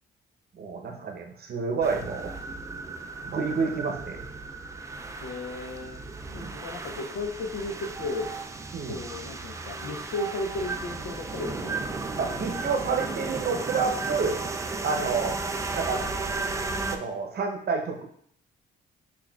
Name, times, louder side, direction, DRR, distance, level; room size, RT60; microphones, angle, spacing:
voice 1, 0.6-2.3 3.2-4.2 6.4-6.5 8.7-9.0 12.2-14.4 14.8-15.3 15.8-16.0 16.9-18.1, right 5 dB, 50° right, 3 dB, 0.8 m, -29 dB
sound 1, 1.8-17.0, right 3 dB, 15° right, 0.3 m, -34 dB
voice 2, 5.2-6.0 6.3-8.3 8.9-12.0 14.9-15.0, left 3 dB, 80° left, 4 dB, 0.7 m, -35 dB
5.9 x 2.4 x 2.3 m, 0.64 s
cardioid pair, 90°, 20 cm